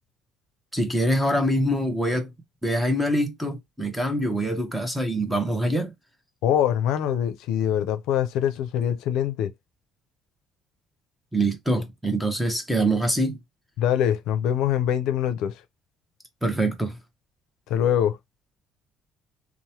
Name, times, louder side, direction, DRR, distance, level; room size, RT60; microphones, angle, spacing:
voice 1, 0.7-2.3 2.6-5.9 11.3-13.4 16.4-17.0, right 1 dB, 5° right, 0.8 m, -24 dB
voice 2, 6.4-9.5 13.8-15.6 17.7-18.2, left 10 dB, 80° left, 0.5 m, -24 dB
3.0 x 2.1 x 2.7 m
cardioid pair, 135°, 0 cm